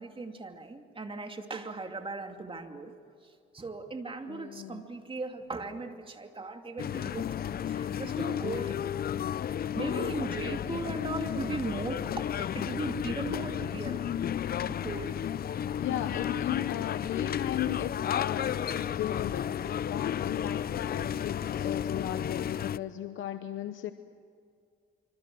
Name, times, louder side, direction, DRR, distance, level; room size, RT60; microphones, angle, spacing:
voice 1, 0.0-2.9 3.2-7.3 7.7-8.8 9.7-12.1 12.4-14.0 14.6-15.2, right 3 dB, 25° right, 5 dB, 2.6 m, -38 dB
voice 2, 4.3-4.8 10.4-11.0 15.8-23.9, left 12 dB, 80° left, 10 dB, 0.9 m, -36 dB
sound 1, 6.8-22.8, left 9 dB, 50° left, 0.6 m, -32 dB
26.0 x 25.5 x 6.3 m, 2.3 s
cardioid pair, 90°, 20 cm